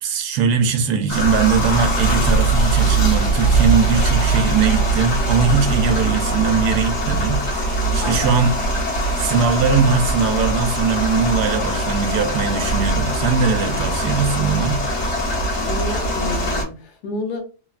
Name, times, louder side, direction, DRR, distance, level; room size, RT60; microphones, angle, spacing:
voice 1, 0.0-8.6 9.2-14.8, right 5 dB, 80° right, 1.1 m, -20 dB
sound 1, 1.1-16.6, right 2 dB, 50° left, 1.0 m, -21 dB
voice 2, 8.0-8.4 15.6-17.4, left 2 dB, 75° left, 1.2 m, -30 dB
3.0 x 2.2 x 2.3 m
omnidirectional pair, 1.8 m